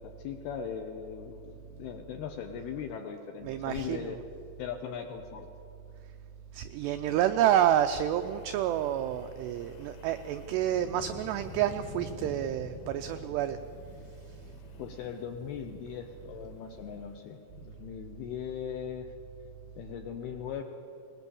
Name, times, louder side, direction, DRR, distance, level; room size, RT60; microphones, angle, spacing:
voice 1, 0.0-4.2 4.6-5.5 14.8-19.1 19.8-20.6, left 8 dB, 75° left, 5 dB, 2.4 m, -39 dB
voice 2, 3.5-4.1 6.5-13.6, right 11 dB, 90° right, 8 dB, 2.4 m, -29 dB
Wind, 7.6-17.9, left 3 dB, 60° left, 3.3 m, -49 dB
22.0 x 19.5 x 7.0 m, 2.6 s
omnidirectional pair, 5.6 m